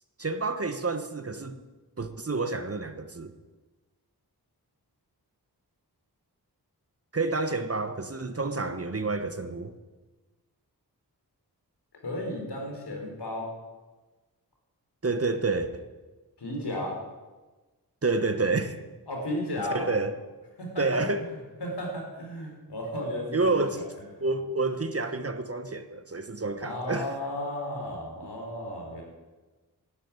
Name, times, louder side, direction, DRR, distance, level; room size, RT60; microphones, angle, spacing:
voice 1, 0.2-1.6 2.0-3.3 7.1-9.7 15.0-15.9 18.0-18.8 19.7-20.2 20.8-21.3 23.3-23.8 24.2-27.2, right 3 dB, 35° right, 9 dB, 1.3 m, -29 dB
voice 2, 12.0-13.5 16.4-16.9 19.1-19.9 20.6-20.8 21.2-23.8 24.2-24.3 26.6-29.0, left 1 dB, 80° left, 1 dB, 4.5 m, -34 dB
10.5 x 10.5 x 9.7 m, 1.2 s
cardioid pair, 45°, 40 cm